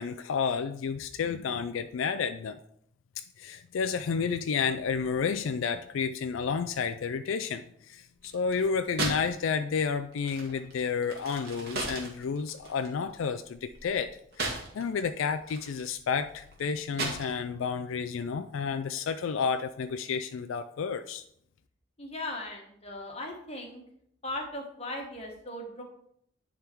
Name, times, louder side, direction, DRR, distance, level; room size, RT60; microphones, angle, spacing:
voice 1, 0.0-2.6 3.4-14.1 14.4-21.2, left 6 dB, 80° left, 9 dB, 0.4 m, -31 dB
sound 1, 8.2-9.4 9.6-15.0 15.4-17.7, right 2 dB, 50° right, 1.8 m, -36 dB
voice 2, 22.0-23.8 24.2-25.8, left 1 dB, 30° left, 1 dB, 1.3 m, -38 dB
10.5 x 3.7 x 4.5 m, 0.70 s
head